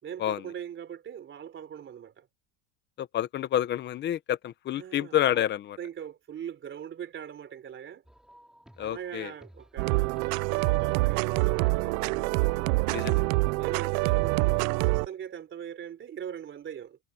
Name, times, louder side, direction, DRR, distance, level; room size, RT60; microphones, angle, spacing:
voice 1, 0.0-2.3 4.7-5.4 5.8-8.0 8.8-12.3 13.1-13.2 13.5-17.0, right 9 dB, 25° right, 3.5 m, -41 dB
voice 2, 3.0-5.8 8.8-9.3 12.9-13.2, left 11 dB, 25° left, 0.7 m, -29 dB
sound 1, 8.0-13.3, equal, ahead, 2.4 m, -54 dB
sound 2, 9.8-15.1, right 26 dB, 70° right, 0.6 m, -26 dB
cardioid pair, 170°, 46 cm